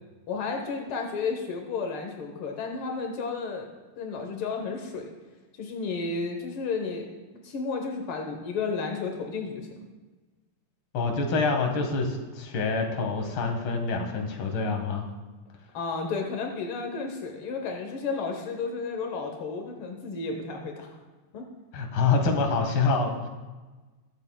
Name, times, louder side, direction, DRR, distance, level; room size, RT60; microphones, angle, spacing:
voice 1, 0.3-3.7 4.0-5.1 5.6-7.1 7.4-9.9 15.7-20.9 21.3-21.5, left 4 dB, 85° left, 3 dB, 1.1 m, -32 dB
voice 2, 10.9-15.1 21.7-23.3, left 4 dB, 65° left, 3 dB, 1.3 m, -26 dB
21.5 x 8.0 x 2.3 m, 1.2 s
omnidirectional pair, 3.9 m